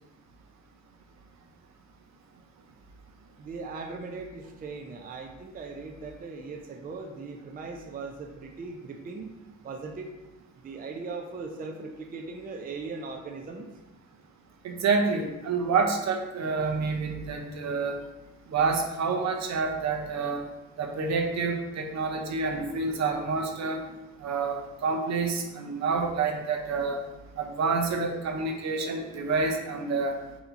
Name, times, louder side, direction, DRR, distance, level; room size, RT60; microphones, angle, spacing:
voice 1, 3.4-9.4 9.6-10.2 10.6-13.7, right 4 dB, 30° right, 3 dB, 0.4 m, -39 dB
voice 2, 14.6-17.9 18.5-20.4 20.8-23.8 24.2-27.0 27.4-30.1, right 4 dB, 65° right, 3 dB, 0.7 m, -28 dB
4.2 x 2.8 x 3.9 m, 1.0 s
cardioid pair, 90°, 30 cm